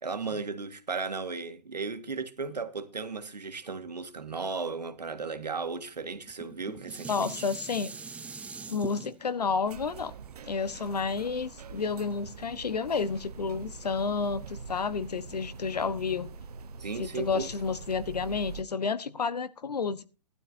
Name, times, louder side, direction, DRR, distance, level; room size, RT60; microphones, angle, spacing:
voice 1, 0.0-7.4 16.8-17.5, right 4 dB, 85° right, 1.7 m, -35 dB
Dishes pots and pans, 6.3-11.6 12.1-12.2, right 5 dB, 5° right, 0.5 m, -43 dB
voice 2, 7.1-7.9 8.7-10.1 10.5-16.3 17.0-20.0, left 5 dB, 75° left, 1.1 m, -30 dB
sound 1, 9.7-18.6, right 5 dB, 70° right, 0.8 m, -44 dB
16.5 x 12.0 x 2.7 m
hypercardioid pair, 130°, 21 cm